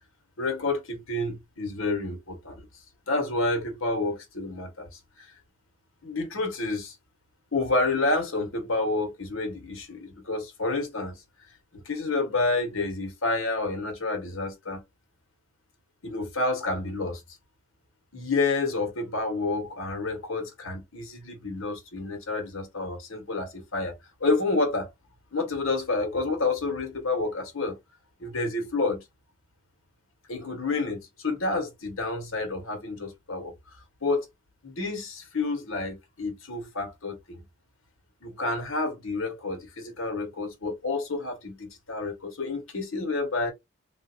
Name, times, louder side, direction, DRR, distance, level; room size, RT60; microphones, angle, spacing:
voice 1, 0.4-2.7 3.1-5.3 6.0-6.9 7.5-11.2 11.7-14.8 16.0-17.2 18.1-23.9 24.2-24.9 25.3-27.8 28.2-29.0 30.3-33.5 34.0-34.3 34.6-37.4 38.2-43.5, left 3 dB, 80° left, 1.4 m, -29 dB
3.4 x 2.7 x 2.7 m
head